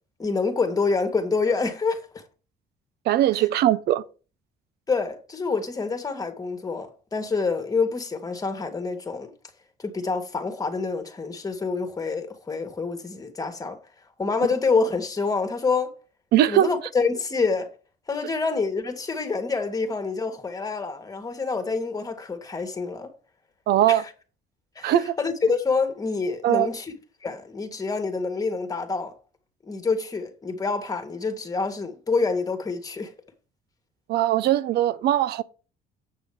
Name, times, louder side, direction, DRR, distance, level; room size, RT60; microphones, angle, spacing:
voice 1, 0.2-2.2 3.3-3.4 4.9-9.3 9.8-13.8 14.2-15.9 16.5-17.7 18.1-23.1 23.9-24.1 24.7-26.9 27.2-29.1 29.6-33.1, left 4 dB, 20° left, 1.8 m, -27 dB
voice 2, 3.1-4.0 16.3-16.7 23.7-24.0 24.8-25.2 26.4-26.7 34.1-35.4, right 12 dB, 70° right, 0.7 m, -20 dB
8.0 x 6.2 x 4.9 m
cardioid pair, 110°, 17 cm